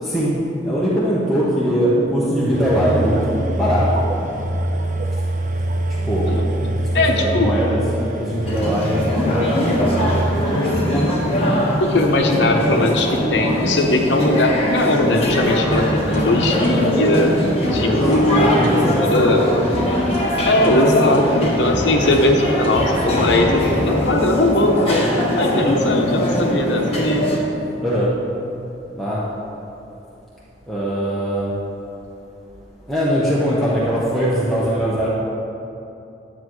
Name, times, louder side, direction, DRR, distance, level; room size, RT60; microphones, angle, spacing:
voice 1, 0.0-4.1 5.1-5.2 6.0-6.3 6.6-10.2 17.8-19.1 27.8-28.1 28.9-29.2 30.7-31.5 32.9-35.1, equal, ahead, -9 dB, 0.9 m, -21 dB
sound 1, 2.5-10.8, right 1 dB, 45° right, 0.5 m, -24 dB
voice 2, 6.9-7.6 11.8-17.3 17.7-18.6 19.0-19.5 20.4-27.3, left 1 dB, 75° left, 2 dB, 0.8 m, -19 dB
sound 2, 8.4-27.4, equal, 35° left, 1.3 m, -21 dB
sound 3, 15.6-24.6, equal, 65° right, 2.1 m, -32 dB
10.0 x 8.4 x 3.1 m, 2.8 s
head